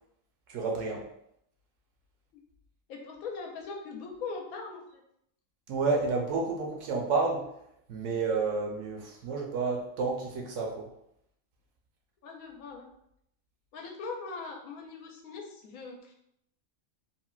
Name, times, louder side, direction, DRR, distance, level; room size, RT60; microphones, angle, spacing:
voice 1, 0.5-1.1 5.7-7.5 7.9-10.9, right 4 dB, 70° right, 0 dB, 0.8 m, -30 dB
voice 2, 2.9-5.0 12.2-12.9 13.7-16.1, left 4 dB, 85° left, 1 dB, 1.1 m, -40 dB
3.7 x 2.1 x 2.3 m, 0.75 s
omnidirectional pair, 1.5 m